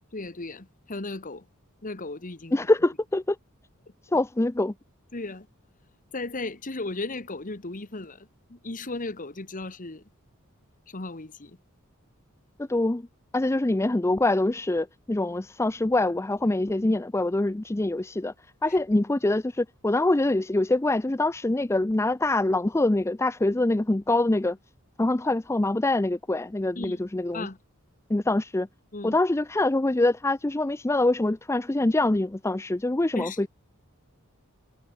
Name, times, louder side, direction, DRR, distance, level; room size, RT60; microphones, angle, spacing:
voice 1, 0.1-1.4 1.8-2.6 5.1-5.5 6.1-10.0 10.9-11.6 26.7-27.0 27.3-27.6 28.9-29.2 33.1-33.4, left 2 dB, 40° left, 1.5 m, -36 dB
voice 2, 2.5-3.4 4.1-4.7 12.6-13.1 13.3-18.3 18.6-24.6 25.0-27.5 28.1-28.7 29.0-33.5, left 2 dB, 15° left, 0.5 m, -24 dB
head